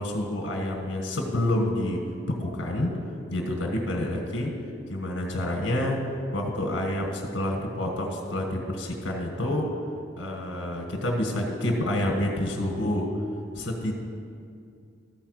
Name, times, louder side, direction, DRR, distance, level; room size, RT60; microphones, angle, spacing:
voice 1, 0.0-2.0 2.4-2.9 3.3-4.5 4.9-6.0 6.3-9.7 10.2-13.1 13.5-13.9, left 1 dB, 80° left, 1 dB, 1.4 m, -28 dB
13.5 x 4.5 x 6.4 m, 2.4 s
head